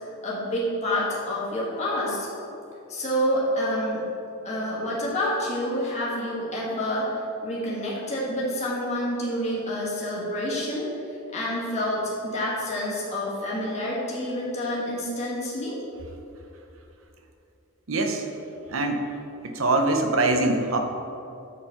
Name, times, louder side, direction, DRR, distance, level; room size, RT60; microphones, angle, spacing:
voice 1, 0.2-2.3 2.9-4.0 4.4-7.1 7.4-10.9 11.3-15.8, equal, 35° left, -6 dB, 1.4 m, -28 dB
voice 2, 17.9-18.3 18.7-19.1 19.4-20.8, right 2 dB, 70° right, 4 dB, 0.8 m, -23 dB
7.4 x 4.4 x 5.8 m, 2.8 s
head